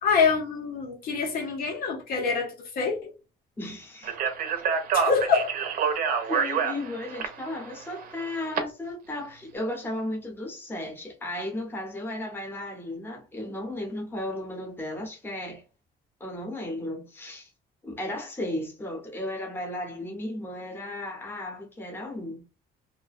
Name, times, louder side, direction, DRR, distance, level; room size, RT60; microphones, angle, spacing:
voice 1, 0.0-3.1 4.9-5.5, left 5 dB, 55° left, 0.6 m, -25 dB
voice 2, 3.6-4.2 6.3-15.6 16.2-17.5 17.8-22.4, left 1 dB, 10° left, 0.7 m, -35 dB
Speech, 4.0-8.6, right 6 dB, 50° right, 0.5 m, -27 dB
2.5 x 2.1 x 2.3 m
cardioid pair, 145°, 18 cm